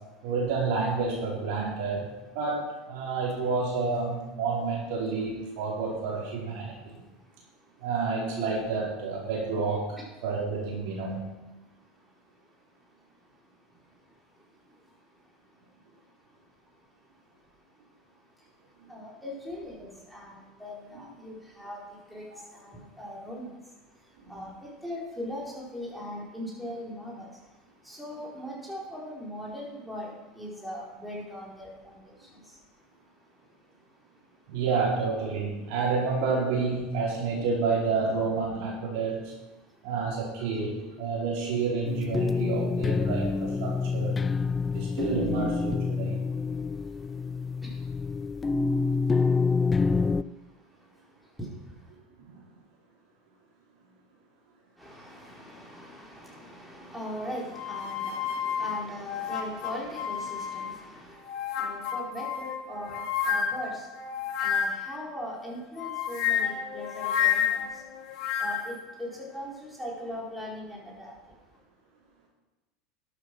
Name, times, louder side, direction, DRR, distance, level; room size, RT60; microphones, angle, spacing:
voice 1, 0.2-2.1 2.3-7.0 7.8-11.2 24.2-24.3 34.5-39.3 39.8-44.2 44.7-46.2 52.2-52.4, right 4 dB, 60° right, -4 dB, 4.7 m, -29 dB
voice 2, 6.7-7.9 11.6-34.6 39.6-39.9 40.4-40.5 44.2-45.0 46.3-51.9 54.8-71.6, equal, ahead, -4 dB, 4.4 m, -42 dB
sound 1, 41.8-50.2, left 4 dB, 25° left, 0.4 m, -27 dB
sound 2, 57.5-60.8 61.3-65.0 65.8-68.8, left 8 dB, 55° left, 1.5 m, -30 dB
12.0 x 8.4 x 6.2 m, 1.1 s
hypercardioid pair, 80°, 0 cm